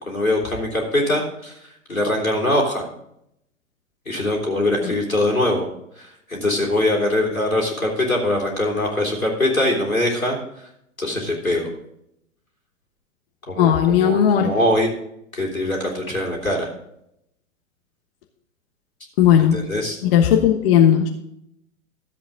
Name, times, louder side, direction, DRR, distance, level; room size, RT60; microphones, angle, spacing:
voice 1, 0.0-2.9 4.0-5.7 6.0-10.7 11.0-11.7 13.5-14.9 15.3-16.7 19.4-20.0, left 1 dB, 85° left, -1 dB, 3.4 m, -22 dB
voice 2, 13.6-14.5 19.2-19.6 20.0-21.1, left 9 dB, 45° left, 4 dB, 1.2 m, -16 dB
13.5 x 8.0 x 3.8 m, 0.75 s
figure-of-eight pair, 100°, 40 cm